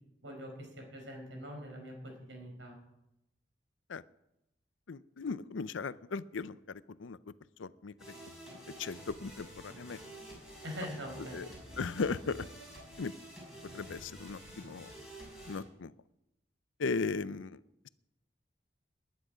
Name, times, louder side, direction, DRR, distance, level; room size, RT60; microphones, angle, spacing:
voice 1, 0.2-2.8 10.6-11.4, equal, 75° right, 2 dB, 4.7 m, -43 dB
voice 2, 4.9-7.2 7.6-7.9 8.8-10.0 11.3-11.5 11.8-12.5 13.0-13.1 13.7-14.9 15.5-15.9 16.8-17.6, left 4 dB, 80° left, 16 dB, 0.5 m, -37 dB
sound 1, 8.0-15.6, right 1 dB, 5° right, 6.4 m, -49 dB
20.0 x 10.5 x 5.0 m, 0.88 s
head